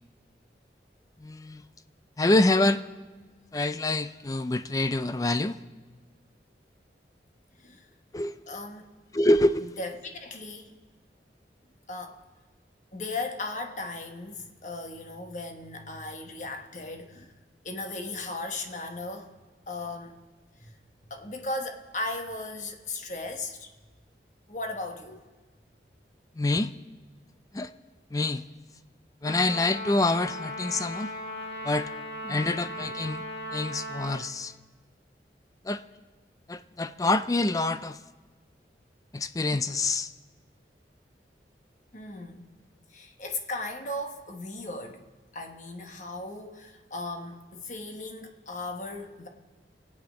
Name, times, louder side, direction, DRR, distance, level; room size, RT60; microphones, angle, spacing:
voice 1, 1.2-1.6 2.2-2.8 3.5-5.6 8.1-8.4 9.1-9.7 26.4-26.7 27.5-27.7 28.1-28.4 29.2-31.1 31.6-31.9 32.3-33.2 33.5-34.5 35.7-35.8 36.5-38.0 39.1-40.1, left 2 dB, 20° left, 0.4 m, -26 dB
voice 2, 8.5-8.9 9.6-10.8 11.9-12.2 12.9-17.3 17.6-19.3 19.7-20.2 20.6-20.8 21.0-23.7 24.5-25.2 32.2-32.6 41.9-42.5 42.9-45.1 45.3-49.3, left 2 dB, 45° left, 1.2 m, -37 dB
Trumpet, 29.2-34.3, left 1 dB, 80° left, 2.1 m, -37 dB
23.0 x 8.6 x 5.1 m
head